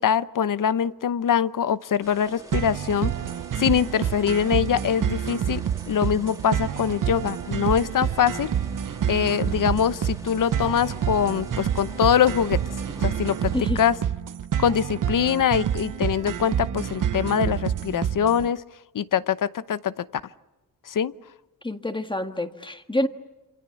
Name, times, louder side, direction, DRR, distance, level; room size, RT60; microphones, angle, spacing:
voice 1, 0.0-3.1 3.6-8.5 9.1-12.6 13.0-13.9 14.6-18.6 18.9-20.1 20.9-21.1, left 8 dB, 60° left, 16 dB, 0.9 m, -23 dB
sound 1, 2.0-13.6, right 1 dB, 10° right, 2.5 m, -43 dB
sound 2, 2.5-18.5, right 9 dB, 60° right, 0.9 m, -28 dB
voice 2, 21.6-23.1, left 1 dB, 15° left, 8 dB, 1.7 m, -27 dB
27.5 x 27.5 x 7.2 m, 1.1 s
wide cardioid pair, 110°, 35 cm